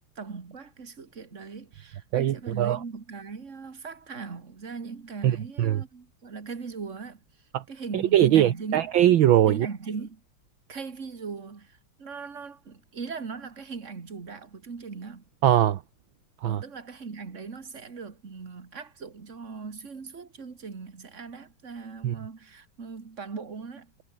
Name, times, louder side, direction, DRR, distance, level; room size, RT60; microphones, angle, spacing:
voice 1, 0.2-7.2 7.7-8.9 9.5-10.2 10.7-15.2 16.4-23.9, right 5 dB, 35° right, 2.4 m, -39 dB
voice 2, 2.1-2.8 5.2-5.8 7.5-7.6 7.9-9.7 15.4-15.8 16.4-16.6 22.0-22.1, right 12 dB, 65° right, 1.7 m, -21 dB
omnidirectional pair, 2.4 m